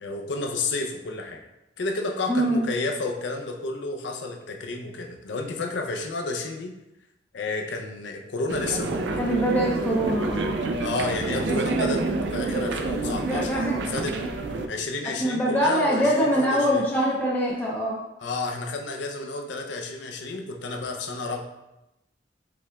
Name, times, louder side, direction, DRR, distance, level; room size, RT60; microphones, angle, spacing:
voice 1, 0.0-1.4 1.8-6.7 7.3-9.2 10.8-14.2 14.7-16.8 18.2-21.4, left 3 dB, 85° left, 3 dB, 0.5 m, -31 dB
voice 2, 2.3-2.7 9.2-10.7 13.3-13.8 15.2-18.0, equal, 10° left, -5 dB, 0.5 m, -24 dB
sound 1, 8.5-14.7, right 3 dB, 70° right, 0.4 m, -28 dB
5.1 x 3.3 x 2.3 m, 0.94 s
head